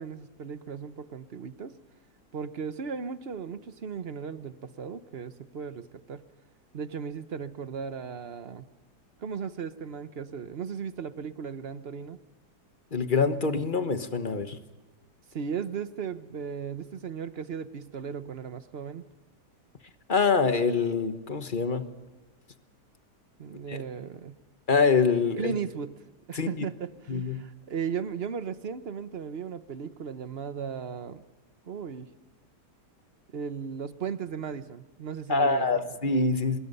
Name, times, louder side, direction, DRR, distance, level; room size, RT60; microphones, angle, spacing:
voice 1, 0.0-1.7 2.3-6.2 6.7-8.7 9.2-12.2 15.3-19.0 23.4-24.4 25.4-26.0 26.3-31.2 31.6-32.1 33.3-35.8, right 6 dB, 45° right, 12 dB, 1.0 m, -36 dB
voice 2, 12.9-14.6 20.1-21.9 23.7-23.8 24.7-25.5 26.3-26.5 27.1-27.4 35.3-36.6, left 4 dB, 35° left, 9 dB, 1.2 m, -25 dB
25.5 x 21.0 x 5.5 m, 1.2 s
omnidirectional pair, 1.8 m